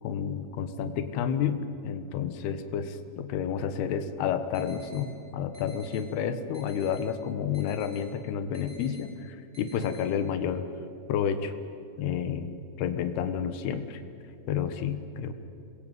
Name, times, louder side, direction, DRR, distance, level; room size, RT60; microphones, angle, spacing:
voice 1, 0.0-10.6 11.1-11.5 12.0-12.5 12.8-14.0 14.5-15.3, left 8 dB, 85° left, 9 dB, 3.2 m, -30 dB
sound 1, 4.5-5.0 5.5-6.0 6.5-7.0 7.5-8.0 8.5-9.0 9.5-10.0, left 1 dB, 20° right, 4.2 m, -52 dB
27.5 x 21.0 x 9.2 m, 2.7 s
omnidirectional pair, 4.5 m